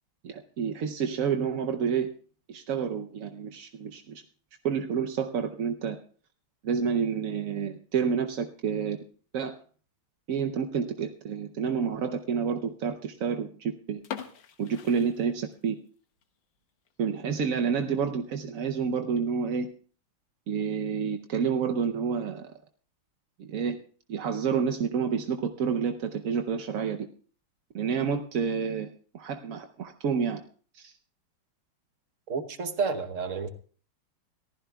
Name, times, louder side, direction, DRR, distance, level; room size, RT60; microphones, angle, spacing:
voice 1, 0.2-2.1 2.5-4.2 4.6-6.0 6.6-9.0 9.3-9.6 10.3-14.0 14.6-15.8 17.0-19.7 20.5-22.5 23.4-23.8 24.1-27.1 27.7-30.4 30.7-30.9, right 6 dB, 60° right, 5 dB, 0.9 m, -29 dB
sound 1, 14.0-15.9 16.2-16.3 16.9-17.0 17.4-17.5 17.8-17.9 18.6-19.0, left 8 dB, 65° left, 1.7 m, -42 dB
voice 2, 32.3-33.5, right 5 dB, 45° right, 8 dB, 1.2 m, -30 dB
23.0 x 15.0 x 2.3 m, 0.42 s
omnidirectional pair, 2.2 m